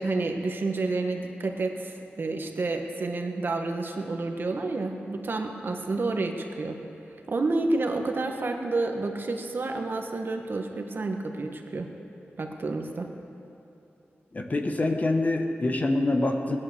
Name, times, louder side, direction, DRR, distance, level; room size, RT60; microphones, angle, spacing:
voice 1, 0.0-6.8 7.3-11.9 12.4-13.1, right 3 dB, 55° right, 3 dB, 1.4 m, -29 dB
voice 2, 14.3-16.6, left 2 dB, 40° left, 4 dB, 1.3 m, -25 dB
17.5 x 11.0 x 6.8 m, 2.8 s
wide cardioid pair, 95°, 4 cm